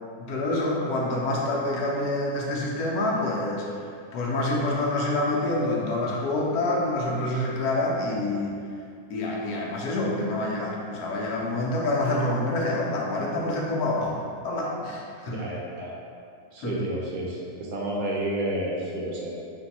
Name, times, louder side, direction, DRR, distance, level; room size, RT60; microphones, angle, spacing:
voice 1, 0.2-3.6 4.1-8.6 9.1-15.4 16.6-16.8, left 2 dB, 75° left, -3 dB, 1.1 m, -27 dB
voice 2, 15.3-15.9 16.5-19.3, right 1 dB, 70° right, -3 dB, 1.0 m, -30 dB
3.6 x 2.6 x 4.0 m, 2.4 s
omnidirectional pair, 1.7 m